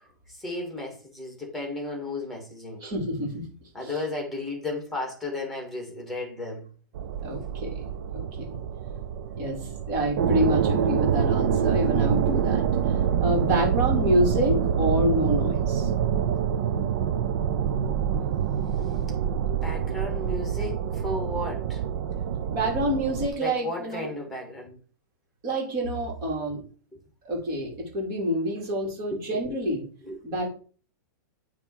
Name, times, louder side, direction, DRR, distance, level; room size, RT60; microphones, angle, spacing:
voice 1, 0.3-2.8 3.7-6.7 19.6-21.8 23.4-24.8 29.1-29.2 30.0-30.2, left 2 dB, ahead, 1 dB, 2.0 m, -34 dB
voice 2, 2.8-3.4 3.8-4.0 7.2-7.8 8.1-8.6 9.4-9.6 9.9-15.9 22.5-24.1 25.4-26.6 27.2-29.8 30.2-30.5, equal, 35° right, -1 dB, 2.8 m, -27 dB
sound 1, 6.9-23.3, right 8 dB, 55° right, 0.6 m, -26 dB
8.9 x 3.2 x 4.7 m, 0.40 s
supercardioid pair, 160°, 11 cm